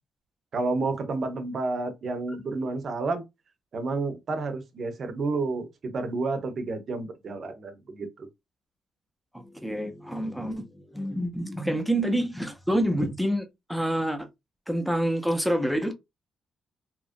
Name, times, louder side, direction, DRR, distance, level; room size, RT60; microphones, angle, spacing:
voice 1, 0.5-3.2 3.7-8.3, right 3 dB, 50° right, 0.7 m, -30 dB
voice 2, 9.3-14.3 14.7-15.9, right 1 dB, ahead, 0.6 m, -27 dB
2.9 x 2.4 x 2.5 m
cardioid pair, 120°, 0 cm